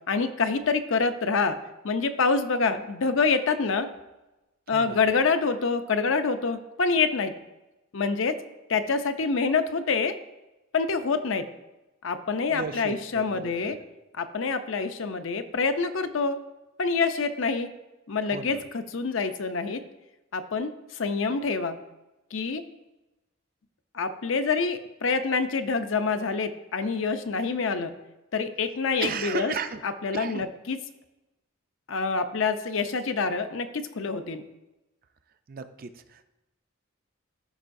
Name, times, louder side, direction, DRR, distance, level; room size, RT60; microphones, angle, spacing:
voice 1, 0.1-1.6 1.8-3.9 4.7-7.4 7.9-8.4 8.7-10.1 10.7-11.5 12.0-13.8 14.2-16.4 16.8-17.7 18.1-19.8 20.3-21.8 22.3-22.6 23.9-27.9 28.3-29.5 29.8-30.8 31.9-34.4, left 4 dB, 65° left, 9 dB, 0.6 m, -26 dB
voice 2, 12.5-13.8 18.2-18.6 29.0-29.8 30.1-30.5 35.5-36.2, right 5 dB, 45° right, 9 dB, 0.4 m, -35 dB
13.5 x 5.4 x 2.6 m, 1.0 s
head